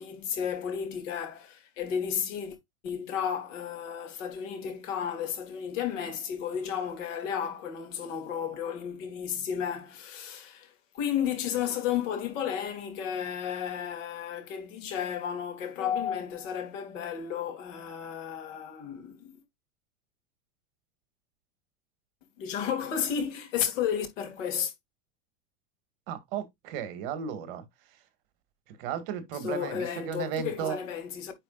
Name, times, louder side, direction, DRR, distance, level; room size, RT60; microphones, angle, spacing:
voice 1, 0.0-2.6 2.8-19.4 22.4-24.7 29.4-31.3, left 8 dB, 70° left, 3.1 m, -33 dB
voice 2, 26.1-27.6 28.7-30.8, right 8 dB, 45° right, 1.8 m, -34 dB
10.0 x 4.8 x 2.4 m
supercardioid pair, 175°, 40 cm